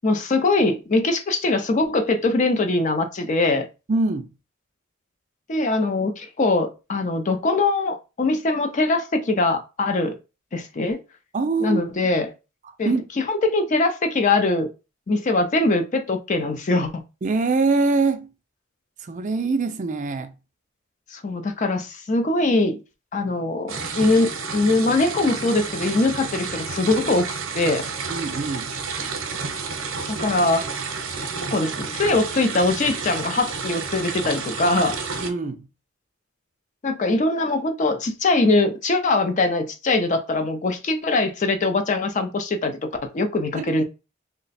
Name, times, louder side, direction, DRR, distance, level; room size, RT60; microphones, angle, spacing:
voice 1, 0.0-3.7 5.5-10.2 10.5-11.0 11.6-12.3 12.8-14.7 15.1-17.0 21.1-22.8 23.1-27.3 27.5-27.9 30.1-30.7 31.4-35.0 36.8-43.8, left 2 dB, 35° left, 0.4 m, -22 dB
voice 2, 3.9-4.3 11.3-11.8 12.6-13.0 17.2-18.3 19.0-20.3 28.1-28.7 35.2-35.7 43.6-43.7, right 3 dB, 35° right, 0.4 m, -23 dB
sound 1, 23.7-35.3, right 5 dB, 85° right, 0.7 m, -30 dB
3.2 x 2.1 x 4.0 m
head